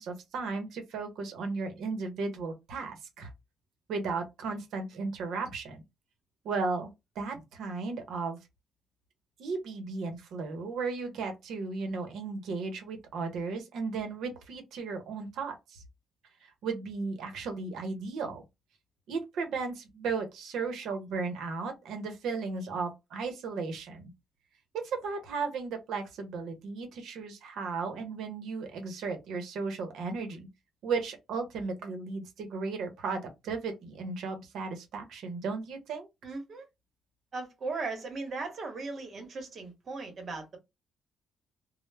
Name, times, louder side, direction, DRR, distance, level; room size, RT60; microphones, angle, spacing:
voice 1, 0.0-3.3 3.9-5.8 6.4-6.9 7.2-8.4 9.4-15.8 16.4-18.4 19.1-24.1 24.7-30.5 30.8-36.1, right 4 dB, 80° right, 0.8 m, -35 dB
voice 2, 36.2-36.6 37.3-40.6, right 3 dB, 50° right, 1.0 m, -37 dB
2.1 x 2.1 x 3.2 m
cardioid pair, 90°, 0 cm